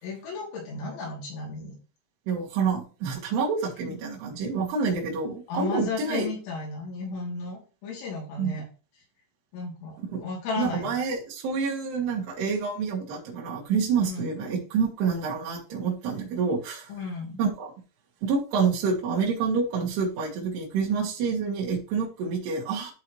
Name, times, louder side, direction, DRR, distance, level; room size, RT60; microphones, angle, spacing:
voice 1, 0.0-1.8 3.9-4.0 5.5-8.7 9.5-11.0 14.1-14.3 16.9-17.4, left 3 dB, 80° left, -2 dB, 5.3 m, -34 dB
voice 2, 2.3-6.3 8.4-8.5 10.1-10.2 10.6-16.9 17.4-17.7 18.2-22.9, right 5 dB, 65° right, -4 dB, 3.5 m, -27 dB
12.5 x 4.6 x 3.2 m, 0.35 s
omnidirectional pair, 5.4 m